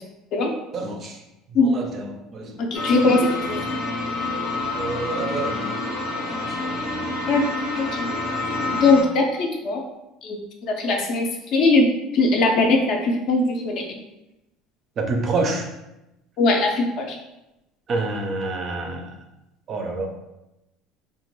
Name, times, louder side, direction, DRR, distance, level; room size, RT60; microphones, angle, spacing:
voice 1, 0.7-1.2 1.5-2.6 4.7-5.9 6.2-6.6 15.0-15.7 17.9-19.1 19.7-20.1, right 2 dB, 30° right, 3 dB, 0.4 m, -28 dB
voice 2, 2.6-3.6 7.3-7.4 7.8-8.1 8.8-9.8 10.2-10.4 10.7-11.9 12.1-13.8 16.4-17.1, left 3 dB, 50° left, 2 dB, 0.5 m, -20 dB
sound 1, 2.7-9.0, left 2 dB, 90° left, 0.7 m, -27 dB
2.9 x 2.2 x 3.0 m, 0.92 s
cardioid pair, 155°, 0 cm